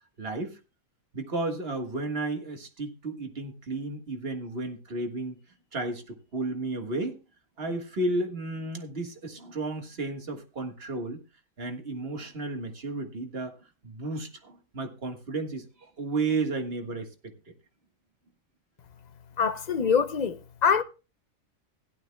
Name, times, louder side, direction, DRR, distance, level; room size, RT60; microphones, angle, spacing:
voice 1, 0.2-0.6 1.1-5.4 5.7-7.2 7.6-11.2 11.6-13.6 13.8-17.3, right 2 dB, 45° right, 1.8 m, -33 dB
voice 2, 19.4-20.8, left 6 dB, 45° left, 0.5 m, -24 dB
16.5 x 11.5 x 2.3 m
omnidirectional pair, 1.4 m